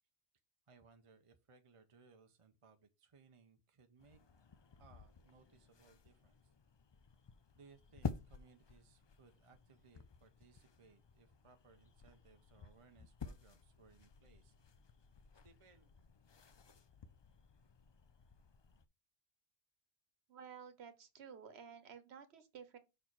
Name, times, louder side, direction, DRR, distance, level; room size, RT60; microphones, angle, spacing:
voice 1, 0.7-4.2 4.8-6.4 7.5-14.5 15.4-15.9, right 4 dB, 35° right, 0.7 m, -65 dB
sound 1, 4.0-18.9, left 6 dB, 45° left, 0.3 m, -51 dB
voice 2, 20.3-22.8, right 7 dB, 80° right, 1.2 m, -53 dB
5.6 x 4.4 x 4.6 m
omnidirectional pair, 1.1 m